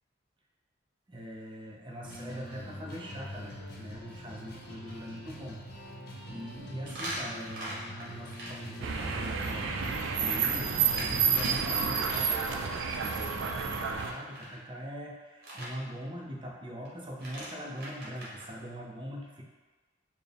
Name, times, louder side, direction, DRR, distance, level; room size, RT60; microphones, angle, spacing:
voice 1, 1.1-19.4, equal, 25° right, -2 dB, 0.5 m, -42 dB
sound 1, 1.9-2.1 2.5-2.6 3.1-3.2 3.4-3.5 6.8-8.5 9.7-12.5 14.0-14.5 15.4-15.7 16.9-17.0 17.1-18.5, right 1 dB, 55° right, 1.1 m, -41 dB
sound 2, 2.0-11.9, equal, 55° left, 0.5 m, -44 dB
sound 3, 8.8-14.1, right 6 dB, 85° right, 0.4 m, -30 dB
4.5 x 2.0 x 3.3 m, 1.3 s
head